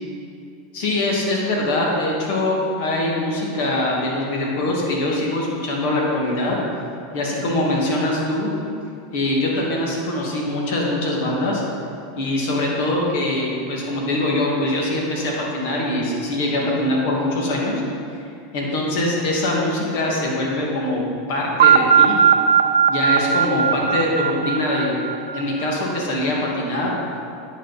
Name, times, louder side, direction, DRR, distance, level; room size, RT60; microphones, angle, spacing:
voice 1, 0.7-6.6 7.1-8.5 9.1-11.6 12.2-17.8 18.5-21.0 21.3-22.1 22.9-24.9 25.3-26.9, left 1 dB, 65° left, -2 dB, 2.1 m, -23 dB
sound 1, 21.6-25.6, right 7 dB, 85° right, 0.5 m, -17 dB
9.8 x 6.3 x 4.2 m, 2.5 s
hypercardioid pair, 105°, 0 cm